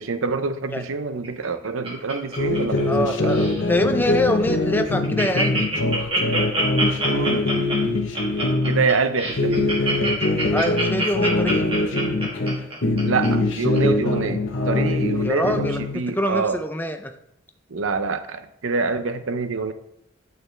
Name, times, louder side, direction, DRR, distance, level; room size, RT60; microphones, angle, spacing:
voice 1, 0.0-3.4 7.1-7.4 8.7-9.7 13.0-16.6 17.7-19.7, right 4 dB, 75° right, 9 dB, 0.6 m, -26 dB
Laughter, 1.2-3.0 3.3-3.6 4.1-4.2 4.5-4.6 4.8-13.3 13.7-13.8, right 1 dB, 25° right, 1.8 m, -26 dB
sound 1, 2.4-8.8 9.3-12.6 12.8-16.0, left 2 dB, 60° left, 0.8 m, -23 dB
voice 2, 2.9-5.7 10.5-11.7 15.2-15.9 16.2-17.1, left 1 dB, 10° left, 6 dB, 0.5 m, -25 dB
9.0 x 6.7 x 3.3 m, 0.79 s
head